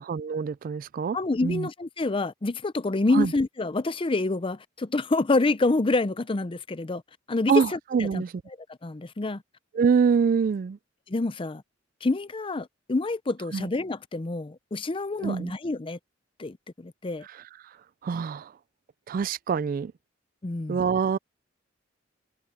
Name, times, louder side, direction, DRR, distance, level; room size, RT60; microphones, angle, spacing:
voice 1, 0.0-1.2 1.4-1.7 3.1-3.3 7.5-8.3 9.7-10.8 13.5-13.7 15.1-15.5 17.2-17.8 18.0-18.5 19.1-19.9 20.7-21.2, right 6 dB, 45° right, 0.3 m, -25 dB
voice 2, 1.1-7.0 7.3-8.2 8.8-9.4 11.1-11.6 12.0-16.0 16.4-17.2 20.4-20.8, left 2 dB, 25° left, 0.5 m, -27 dB
head